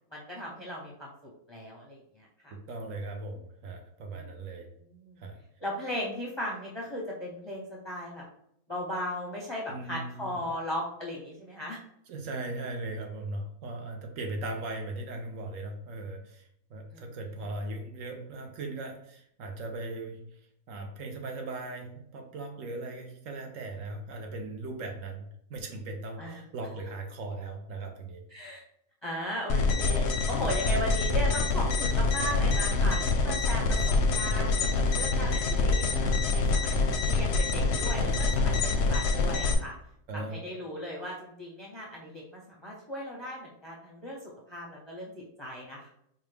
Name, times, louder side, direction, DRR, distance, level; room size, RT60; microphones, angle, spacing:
voice 1, 0.1-2.5 4.1-4.3 4.9-5.2 5.6-8.2 8.7-11.8 16.9-17.1 26.2-26.4 28.3-28.6 29.0-39.7 40.1-45.9, equal, 30° left, -3 dB, 0.5 m, -37 dB
voice 2, 2.5-4.7 5.2-5.4 9.7-10.4 12.1-20.4 20.7-28.2 30.6-30.8 40.1-40.5, right 2 dB, 70° right, 3 dB, 1.0 m, -38 dB
sound 1, 29.5-39.5, left 3 dB, 65° left, 0.7 m, -26 dB
4.7 x 2.2 x 3.3 m, 0.72 s
omnidirectional pair, 1.5 m